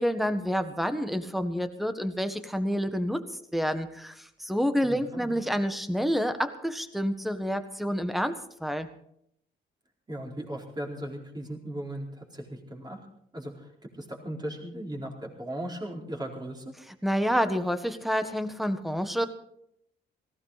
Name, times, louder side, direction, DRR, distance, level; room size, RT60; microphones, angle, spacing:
voice 1, 0.0-8.3 8.6-8.9 17.0-19.3, equal, ahead, 9 dB, 1.5 m, -28 dB
voice 2, 4.9-5.4 10.1-13.0 13.3-16.7, right 1 dB, 20° right, -1 dB, 4.4 m, -37 dB
18.5 x 16.0 x 4.2 m, 0.73 s
cardioid pair, 90°, 20 cm